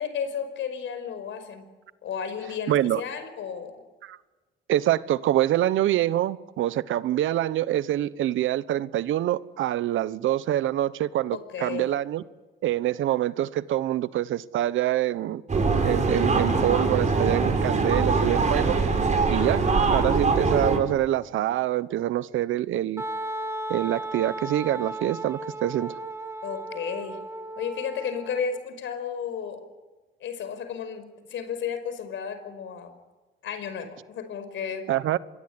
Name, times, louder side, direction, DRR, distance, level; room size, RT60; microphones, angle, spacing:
voice 1, 0.0-1.7 2.0-3.8 11.3-11.9 26.4-27.2 27.6-29.7 30.2-33.0 33.4-34.9, left 7 dB, 75° left, 5.4 m, -33 dB
voice 2, 2.7-3.0 4.0-4.2 4.7-12.2 12.6-15.4 15.8-18.8 19.3-23.0 23.7-26.0 34.9-35.2, right 13 dB, 80° right, 1.1 m, -25 dB
sound 1, 15.5-20.8, right 4 dB, 35° right, 6.2 m, -23 dB
Wind instrument woodwind instrument, 23.0-28.6, right 1 dB, 15° right, 2.0 m, -35 dB
26.5 x 22.5 x 9.8 m
cardioid pair, 90°, 20 cm